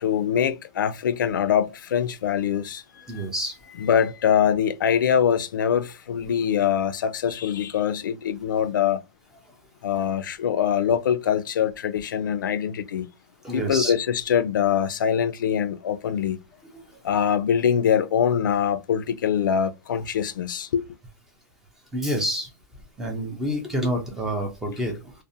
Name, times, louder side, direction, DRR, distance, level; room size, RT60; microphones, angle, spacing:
voice 1, 0.0-3.3 3.8-9.0 9.8-13.1 13.5-16.4 17.0-20.8, left 8 dB, 80° left, 0.4 m, -23 dB
voice 2, 3.1-3.6 13.4-13.9 16.7-16.8 21.9-22.5 23.0-25.1, equal, 5° right, 0.3 m, -28 dB
2.5 x 2.0 x 2.6 m
hypercardioid pair, 170°, 11 cm